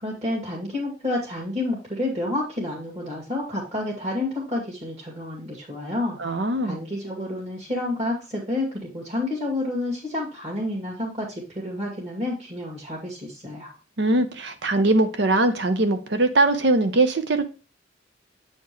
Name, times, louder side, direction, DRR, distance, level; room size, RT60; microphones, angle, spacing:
voice 1, 0.0-6.2 6.6-13.7, left 1 dB, 35° right, -5 dB, 2.1 m, -29 dB
voice 2, 6.2-6.8 14.0-17.4, right 2 dB, 65° right, 8 dB, 0.8 m, -21 dB
8.3 x 4.4 x 3.1 m, 0.34 s
head